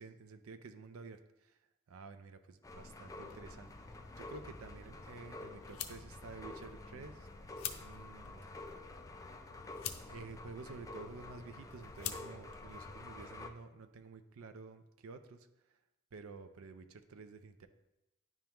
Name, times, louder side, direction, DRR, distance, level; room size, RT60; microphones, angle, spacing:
voice 1, 0.0-1.6 1.9-8.5 9.6-9.8 10.1-15.5 16.1-17.7, right 4 dB, 80° right, 9 dB, 0.5 m, -51 dB
sound 1, 2.6-13.5, left 2 dB, 15° left, 0.4 m, -49 dB
sound 2, 3.1-13.5, left 8 dB, 75° left, 0.5 m, -49 dB
10.5 x 3.5 x 3.0 m, 0.95 s
head